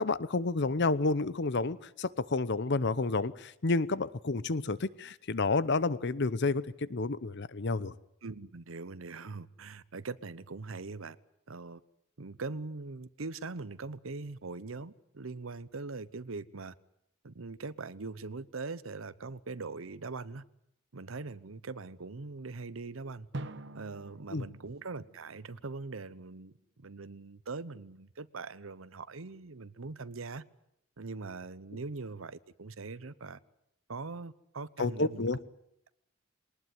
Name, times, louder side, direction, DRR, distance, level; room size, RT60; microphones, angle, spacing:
voice 1, 0.0-7.9 24.3-24.5 34.8-35.4, left 3 dB, 60° left, 18 dB, 0.8 m, -30 dB
voice 2, 8.2-11.2 11.5-11.8 12.2-16.7 17.2-20.4 20.9-23.3 23.7-30.4 31.0-33.4 33.9-35.3, right 3 dB, 80° right, 16 dB, 0.9 m, -42 dB
Drum, 23.3-26.0, right 2 dB, 60° right, 1.2 m, -45 dB
21.5 x 19.5 x 9.5 m, 0.77 s
head